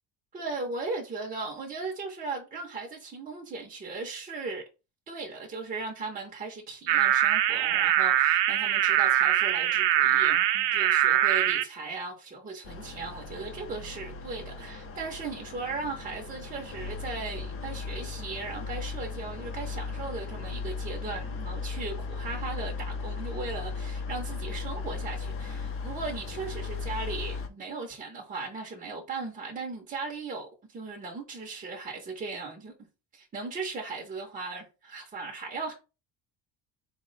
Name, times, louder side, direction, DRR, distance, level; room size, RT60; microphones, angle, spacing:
voice 1, 0.3-4.6 5.1-32.7 33.1-35.7, right 4 dB, 20° right, 0.5 m, -37 dB
sound 1, 6.9-11.6, right 12 dB, 75° right, 0.5 m, -23 dB
sound 2, 12.6-27.5, left 4 dB, 35° left, 0.4 m, -37 dB
4.1 x 2.1 x 3.8 m
cardioid pair, 165°, 42 cm